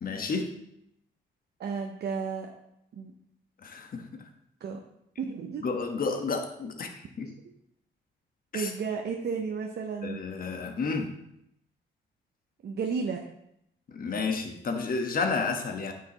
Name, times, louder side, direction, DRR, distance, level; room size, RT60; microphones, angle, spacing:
voice 1, 0.0-0.5 3.6-4.1 5.6-7.3 8.5-8.7 10.0-11.1 13.9-15.9, left 4 dB, 45° left, 4 dB, 1.3 m, -31 dB
voice 2, 1.6-2.5 2.9-3.1 4.6-4.8 5.2-5.6 8.5-10.2 12.6-13.2, right 5 dB, 55° right, 2 dB, 0.8 m, -32 dB
8.8 x 6.7 x 3.0 m, 0.79 s
cardioid pair, 90°, 20 cm